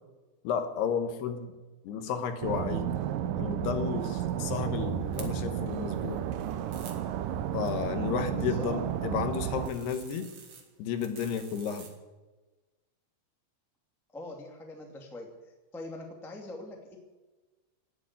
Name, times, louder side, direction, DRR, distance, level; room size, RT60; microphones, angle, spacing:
voice 1, 0.4-1.5 1.8-2.9 3.4-6.2 7.5-10.3 10.8-11.9, left 7 dB, 70° left, 8 dB, 2.9 m, -32 dB
sound 1, 2.4-9.7, right 10 dB, 90° right, 1.9 m, -32 dB
sound 2, 4.2-11.9, right 5 dB, 45° right, 2.1 m, -53 dB
voice 2, 8.3-8.7 14.1-15.3 15.7-17.0, left 1 dB, ahead, 1 dB, 0.7 m, -43 dB
17.5 x 7.9 x 9.8 m, 1.2 s
omnidirectional pair, 5.2 m